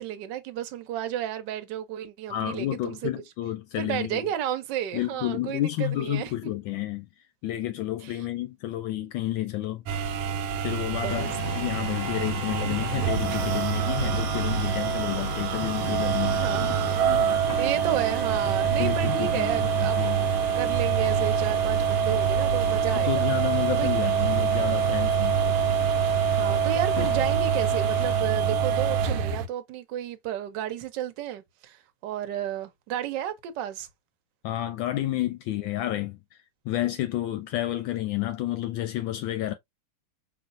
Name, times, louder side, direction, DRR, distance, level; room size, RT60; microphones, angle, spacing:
voice 1, 0.0-3.1 3.8-6.5 8.0-8.3 10.8-11.4 16.2-17.1 17.6-23.3 23.8-23.9 26.3-33.9 35.1-35.2, right 10 dB, 65° right, 1.3 m, -33 dB
voice 2, 2.3-4.2 4.9-7.1 7.4-9.8 10.6-16.7 17.0-17.4 18.8-20.2 22.9-25.4 34.4-36.2 36.7-39.5, left 14 dB, 75° left, 1.2 m, -30 dB
sound 1, 9.9-29.4, right 7 dB, 85° right, 1.5 m, -25 dB
sound 2, 11.1-28.2, left 3 dB, 25° left, 1.1 m, -39 dB
5.2 x 3.1 x 2.5 m
omnidirectional pair, 2.3 m